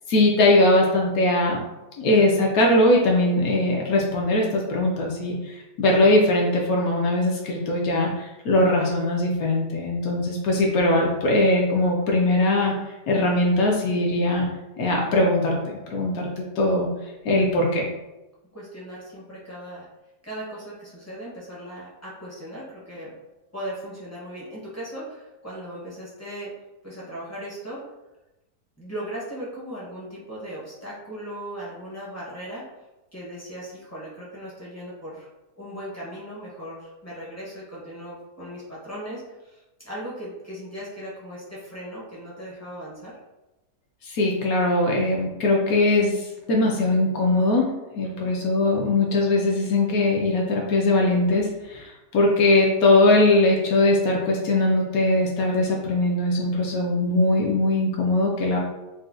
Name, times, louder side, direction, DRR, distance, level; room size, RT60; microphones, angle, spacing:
voice 1, 0.1-1.6 2.0-12.7 13.1-14.5 14.8-16.9 17.2-17.9 44.0-47.7 48.0-58.6, left 2 dB, 70° left, -1 dB, 0.9 m, -21 dB
voice 2, 18.5-19.9 20.2-23.1 23.5-26.5 26.8-27.8 28.8-32.7 33.1-35.3 35.6-43.1 48.0-48.3, right 1 dB, 20° left, -7 dB, 0.4 m, -38 dB
3.9 x 2.1 x 2.4 m, 1.0 s
omnidirectional pair, 1.7 m